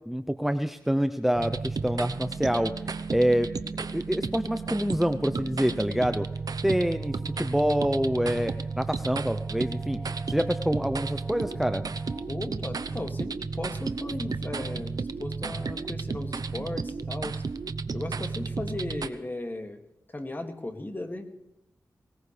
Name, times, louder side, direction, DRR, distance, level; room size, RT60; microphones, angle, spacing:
voice 1, 0.1-2.7 3.1-3.5 3.8-6.3 6.6-10.0 10.3-11.9 14.2-14.3, equal, 5° right, 8 dB, 0.7 m, -26 dB
sound 1, 1.4-19.1, right 4 dB, 65° right, 0.9 m, -33 dB
sound 2, 6.0-12.3, equal, 20° right, 2.7 m, -50 dB
voice 2, 12.3-17.4 17.9-19.8 20.1-21.3, left 1 dB, 30° left, 4 dB, 2.3 m, -36 dB
20.0 x 19.5 x 3.4 m, 0.87 s
cardioid pair, 55°, 7 cm